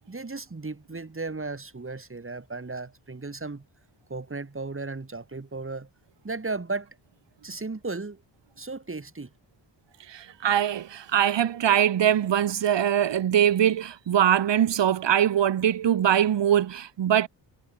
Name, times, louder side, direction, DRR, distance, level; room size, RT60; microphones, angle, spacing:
voice 1, 0.1-3.7 4.1-5.9 6.2-7.0 7.4-8.2 8.6-9.3, right 3 dB, 25° right, 7.9 m, -35 dB
voice 2, 10.1-17.3, right 10 dB, 65° right, 1.3 m, -22 dB
wide cardioid pair, 105°, 47 cm